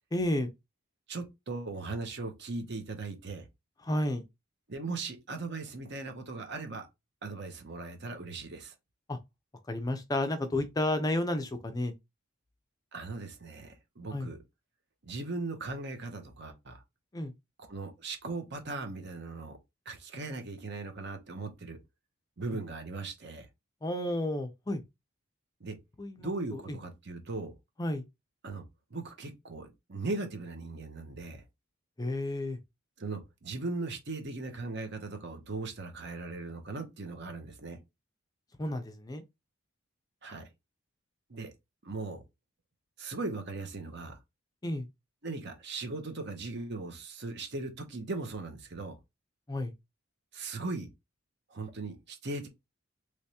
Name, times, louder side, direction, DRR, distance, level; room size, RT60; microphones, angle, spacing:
voice 1, 0.1-0.5 3.8-4.2 9.1-9.2 9.7-11.9 14.1-14.3 17.1-17.3 23.8-24.8 26.0-26.6 27.8-28.0 32.0-32.6 38.6-39.2 44.6-44.9 49.5-49.7, left 1 dB, 20° left, 0.5 m, -31 dB
voice 2, 1.1-3.5 4.7-6.9 7.2-8.7 12.9-14.4 15.0-16.8 17.7-19.6 19.9-21.8 22.4-23.5 25.6-25.8 26.2-27.5 28.4-28.6 28.9-31.4 33.0-37.8 40.2-40.5 41.3-41.5 41.8-42.2 43.0-44.2 45.2-49.0 50.3-50.9 51.5-52.5, right 3 dB, 55° right, 0.9 m, -38 dB
3.3 x 3.0 x 2.8 m
head